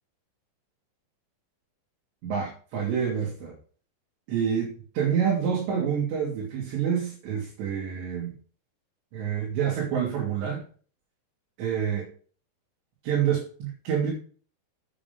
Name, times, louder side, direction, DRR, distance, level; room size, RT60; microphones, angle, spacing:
voice 1, 2.2-3.6 4.3-8.3 9.1-10.6 11.6-12.1 13.0-14.1, right 8 dB, 65° right, -5 dB, 5.1 m, -27 dB
9.0 x 8.5 x 5.4 m, 0.43 s
omnidirectional pair, 5.7 m